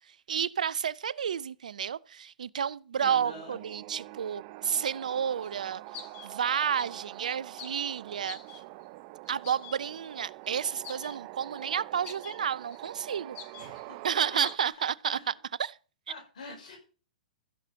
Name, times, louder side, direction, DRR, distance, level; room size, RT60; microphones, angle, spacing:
voice 1, 0.1-5.8 6.2-8.4 9.3-13.4 14.0-15.3 15.6-15.8, right 8 dB, 75° right, 0.7 m, -31 dB
voice 2, 3.0-3.6 13.6-14.4 15.1-15.4 16.1-16.8, left 3 dB, 70° left, 5.8 m, -46 dB
sound 1, 3.0-14.6, right 19 dB, 40° right, 0.7 m, -45 dB
sound 2, 5.4-5.5 5.9-6.3 6.7-7.1 7.6-7.9 8.3-8.8 9.3-9.8 10.0-10.1 10.4-10.6 10.8-11.7 12.0-12.4 12.7-12.9 13.4-14.1 14.4-14.7, left 8 dB, 35° left, 2.2 m, -46 dB
15.0 x 6.8 x 7.0 m
hypercardioid pair, 125°, 4 cm